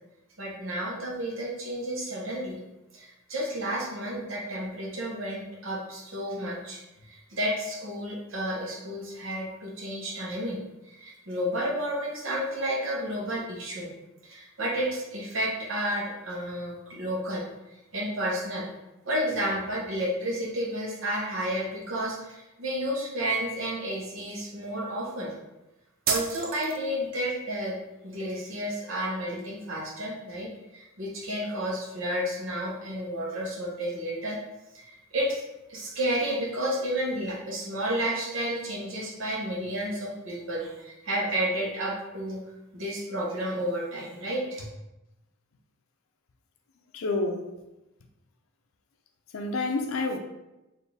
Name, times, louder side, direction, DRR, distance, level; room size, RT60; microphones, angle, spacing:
voice 1, 0.4-2.6 2.9-6.8 7.1-10.6 10.9-13.9 14.2-17.4 17.9-18.7 19.0-25.3 26.1-27.7 28.0-34.4 34.7-35.4 35.7-42.4 42.7-44.7, right 1 dB, 65° right, 1.0 m, -31 dB
sound 1, 26.1-27.1, right 5 dB, 45° right, 0.5 m, -31 dB
voice 2, 46.9-47.4 49.3-50.2, left 2 dB, 80° left, 0.5 m, -28 dB
4.3 x 2.7 x 3.4 m
head